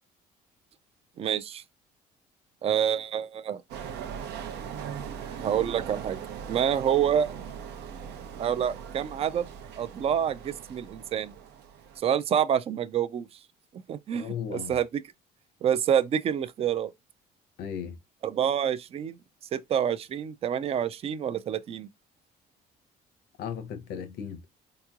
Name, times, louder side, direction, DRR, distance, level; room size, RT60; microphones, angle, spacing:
voice 1, 1.2-1.6 2.6-3.6 5.4-6.2 6.5-7.3 8.4-9.5 9.8-11.3 12.0-13.3 13.9-15.0 15.6-16.9 18.2-19.2 19.5-21.9, right 9 dB, 35° right, 0.4 m, -27 dB
sound 1, 3.7-12.0, right 8 dB, 80° right, 0.6 m, -40 dB
voice 2, 14.1-14.8 17.6-18.0 23.4-24.4, left 8 dB, 75° left, 0.8 m, -36 dB
3.6 x 2.9 x 2.4 m
cardioid pair, 110°, 17 cm